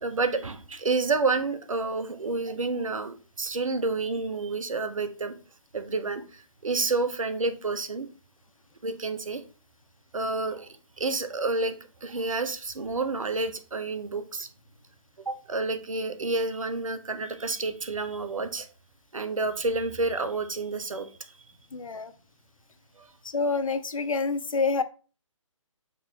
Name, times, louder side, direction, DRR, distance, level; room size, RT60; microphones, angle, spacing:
voice 1, 0.0-5.3 5.7-8.1 8.8-9.4 10.1-10.7 11.0-14.5 15.3-18.7 19.1-21.3 23.0-23.1, right 3 dB, 75° right, 1.2 m, -29 dB
voice 2, 21.7-22.1 23.2-24.8, left 4 dB, 75° left, 0.8 m, -27 dB
6.0 x 4.3 x 4.4 m
figure-of-eight pair, 150°, 17 cm